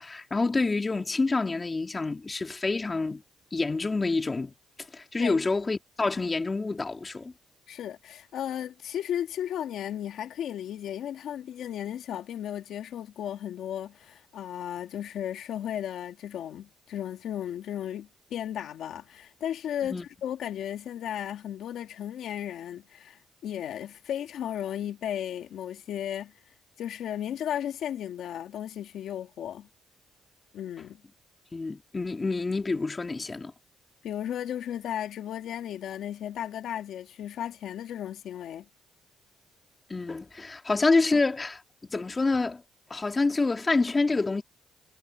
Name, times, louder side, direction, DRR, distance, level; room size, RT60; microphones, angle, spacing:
voice 1, 0.0-3.2 3.5-4.5 4.9-7.3 19.8-20.1 31.5-33.5 39.9-41.6 41.9-42.6 42.9-44.4, left 3 dB, 25° left, 2.5 m, -27 dB
voice 2, 7.7-26.3 26.8-29.7 30.5-31.0 34.0-38.7, left 10 dB, 75° left, 2.0 m, -35 dB
cardioid pair, 90°, 0 cm